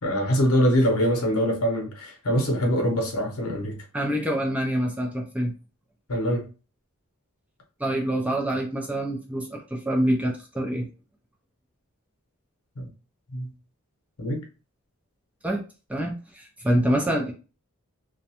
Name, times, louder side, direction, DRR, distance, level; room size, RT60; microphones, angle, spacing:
voice 1, 0.0-3.8 6.1-6.5 12.8-12.9 13.3-13.5 14.2-14.4, equal, 80° left, 0.8 m, -23 dB
voice 2, 3.9-5.5 7.8-10.9 15.4-15.6 15.9-17.3, right 1 dB, 5° right, 0.3 m, -26 dB
2.4 x 2.1 x 2.8 m
head